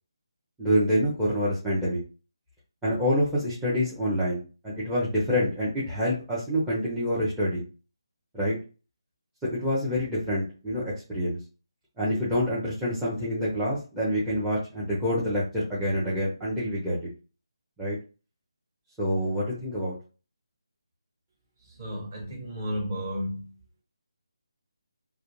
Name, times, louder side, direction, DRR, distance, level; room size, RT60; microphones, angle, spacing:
voice 1, 0.6-2.0 2.8-7.6 8.3-8.6 9.5-10.8 11.1-11.4 12.0-17.0 17.8-18.0 19.0-20.0, equal, 5° right, 0.6 m, -27 dB
voice 2, 21.6-23.5, equal, 30° right, 1.3 m, -33 dB
2.4 x 2.1 x 3.0 m
figure-of-eight pair, 165°, 3 cm